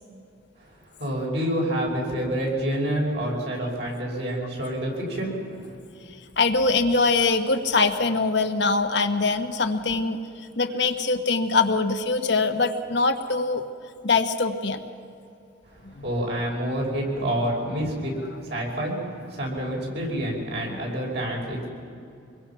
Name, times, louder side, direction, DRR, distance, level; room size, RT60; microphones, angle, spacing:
voice 1, 1.0-5.3 16.0-18.1 18.4-19.0 19.3-21.7, right 1 dB, 55° right, -2 dB, 6.1 m, -27 dB
voice 2, 6.4-10.2 10.6-13.6 14.0-14.8 15.9-16.1 20.7-20.8, left 3 dB, 60° left, 6 dB, 1.3 m, -23 dB
25.5 x 22.0 x 5.9 m, 2.6 s
head